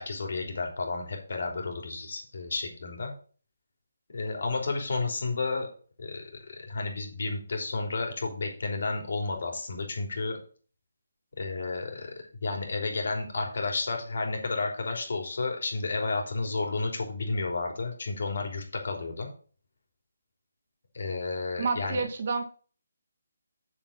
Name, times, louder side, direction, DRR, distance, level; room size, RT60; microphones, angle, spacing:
voice 1, 0.0-3.1 4.1-5.7 6.0-10.4 11.4-12.1 12.4-19.3 20.9-22.0, left 3 dB, 65° left, 2 dB, 3.2 m, -32 dB
voice 2, 21.6-22.5, right 4 dB, 50° right, 6 dB, 1.8 m, -29 dB
7.0 x 5.5 x 7.2 m, 0.41 s
figure-of-eight pair, 160°, 0 cm